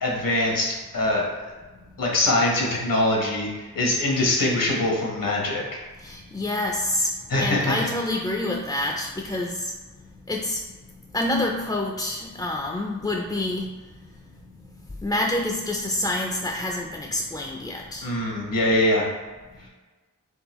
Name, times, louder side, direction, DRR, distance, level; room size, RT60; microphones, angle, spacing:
voice 1, 0.0-0.7 0.9-1.3 2.0-5.6 7.3-7.7 18.0-19.1, left 1 dB, 85° left, -2 dB, 1.0 m, -23 dB
voice 2, 6.0-7.1 7.4-9.7 10.3-10.6 11.1-13.7 15.0-18.1, left 1 dB, 15° left, 0 dB, 0.3 m, -27 dB
3.6 x 3.5 x 3.0 m, 1.3 s
wide cardioid pair, 70°, 33 cm